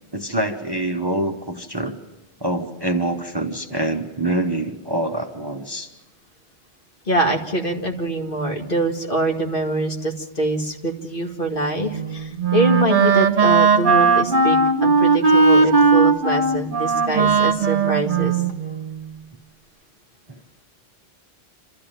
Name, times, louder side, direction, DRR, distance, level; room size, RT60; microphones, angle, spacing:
voice 1, 0.1-2.0 2.4-5.9, right 1 dB, 25° right, 5 dB, 1.0 m, -25 dB
voice 2, 7.1-18.4, right 1 dB, 55° left, 1 dB, 2.3 m, -24 dB
Wind instrument woodwind instrument, 11.9-19.1, right 4 dB, 50° right, 1.3 m, -18 dB
27.5 x 13.5 x 9.0 m, 1.1 s
omnidirectional pair, 1.1 m